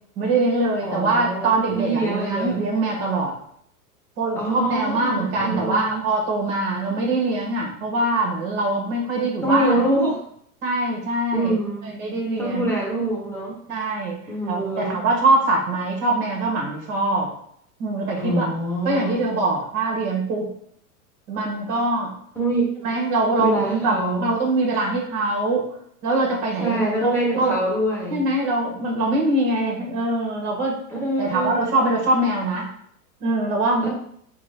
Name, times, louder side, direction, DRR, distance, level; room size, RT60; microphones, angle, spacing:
voice 1, 0.2-3.3 4.2-9.8 10.6-11.5 11.9-12.7 13.7-14.2 14.5-17.3 17.8-18.4 18.8-20.5 21.3-22.1 22.8-25.6 26.0-27.6 28.1-30.8 31.2-32.7 33.2-33.9, right 2 dB, 50° right, -1 dB, 1.6 m, -23 dB
voice 2, 0.8-2.6 4.4-6.0 9.4-10.2 11.3-11.9 12.4-13.6 14.3-15.0 18.2-19.2 22.3-23.0 23.4-24.3 26.6-28.2 30.9-31.6 33.8-33.9, right 1 dB, 5° left, -5 dB, 1.1 m, -25 dB
4.6 x 2.3 x 4.2 m, 0.66 s
hypercardioid pair, 115°, 46 cm